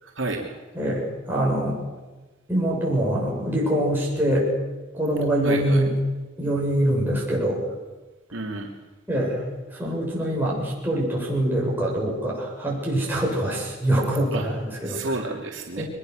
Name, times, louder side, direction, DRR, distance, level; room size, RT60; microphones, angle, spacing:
voice 1, 0.0-0.5 5.4-5.8 8.3-8.7 14.3-14.5 14.8-15.8, right 2 dB, 75° right, 0 dB, 3.0 m, -30 dB
voice 2, 0.7-1.8 2.5-4.5 4.9-5.9 6.4-7.6 9.1-9.4 9.8-15.0 15.8-15.9, right 1 dB, 10° right, -4 dB, 7.8 m, -24 dB
24.0 x 20.5 x 6.6 m, 1.2 s
head